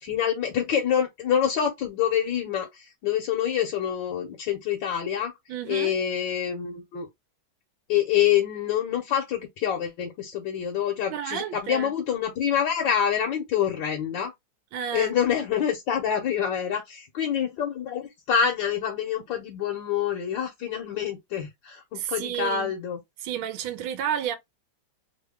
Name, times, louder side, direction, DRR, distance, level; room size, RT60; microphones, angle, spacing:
voice 1, 0.0-5.3 5.6-7.1 7.9-14.3 14.9-23.0, left 9 dB, 70° left, 1.4 m, -26 dB
voice 2, 5.5-5.9 11.1-11.9 14.7-15.1 21.9-22.7 23.2-24.4, right 9 dB, 90° right, 1.4 m, -31 dB
3.5 x 2.2 x 3.4 m
omnidirectional pair, 2.2 m